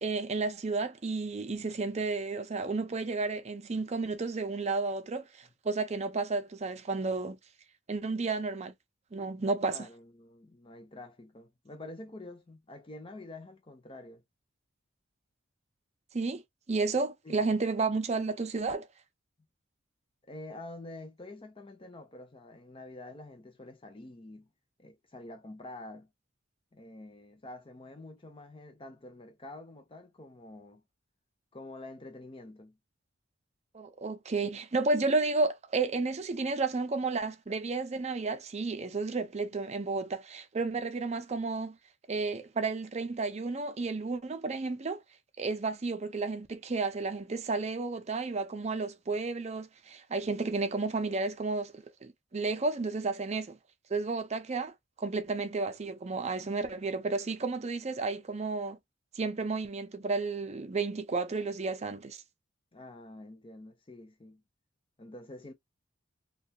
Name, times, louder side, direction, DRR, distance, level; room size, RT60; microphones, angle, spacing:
voice 1, 0.0-7.4 7.9-8.7 9.1-9.9 16.1-16.4 16.7-18.9 33.7-41.8 42.1-45.0 45.4-53.6 53.9-54.7 55.0-58.8 59.1-62.2, right 3 dB, 35° right, 0.5 m, -32 dB
voice 2, 9.7-14.2 17.2-17.5 20.2-24.5 24.8-26.1 26.7-30.8 31.5-32.8 62.7-64.4 65.0-65.5, left 2 dB, 25° left, 0.6 m, -47 dB
2.7 x 2.3 x 2.6 m
head